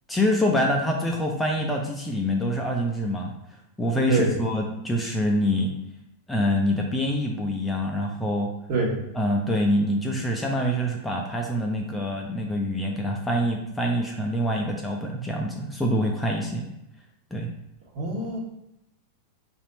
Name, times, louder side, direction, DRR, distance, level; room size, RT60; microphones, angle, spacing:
voice 1, 0.1-3.3 3.8-5.7 6.3-8.5 9.1-16.7 17.3-17.5, equal, 5° left, -1 dB, 0.5 m, -25 dB
voice 2, 17.9-18.4, right 2 dB, 45° right, -3 dB, 1.4 m, -25 dB
4.1 x 2.6 x 4.1 m, 0.83 s
figure-of-eight pair, 90°, 0 cm